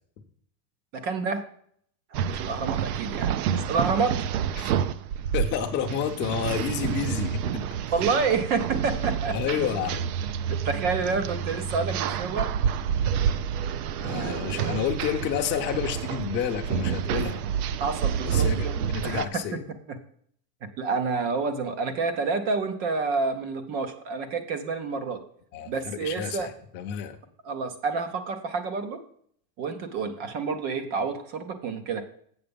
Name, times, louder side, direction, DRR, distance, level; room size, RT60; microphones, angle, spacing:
voice 1, 0.9-1.4 2.3-4.2 7.9-9.4 10.5-12.5 14.2-14.4 17.8-18.7 19.0-19.6 19.9-20.0 20.8-25.2 25.7-26.5 27.4-29.0 29.6-32.0, right 4 dB, 20° right, 10 dB, 0.4 m, -28 dB
sound 1, 2.1-19.3, right 8 dB, 65° right, 0.7 m, -29 dB
voice 2, 5.3-7.7 9.3-10.1 14.0-17.4 18.2-19.6 25.5-27.2, left 8 dB, 25° left, 4 dB, 0.7 m, -30 dB
8.0 x 6.8 x 5.2 m, 0.63 s
supercardioid pair, 165°, 49 cm